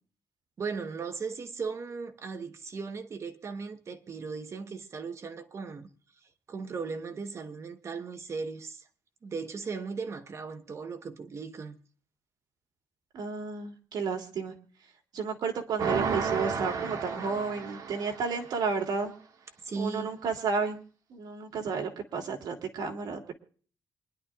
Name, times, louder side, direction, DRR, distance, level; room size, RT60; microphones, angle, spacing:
voice 1, 0.6-5.9 6.5-8.8 9.2-11.8 19.6-20.1, right 5 dB, 40° right, 1.2 m, -37 dB
voice 2, 13.1-14.5 15.1-19.1 19.8-20.8 21.1-23.3, right 5 dB, 75° right, 2.6 m, -32 dB
sound 1, 15.8-18.5, right 5 dB, 55° right, 2.0 m, -32 dB
27.5 x 11.0 x 2.4 m
cardioid pair, 140°, 7 cm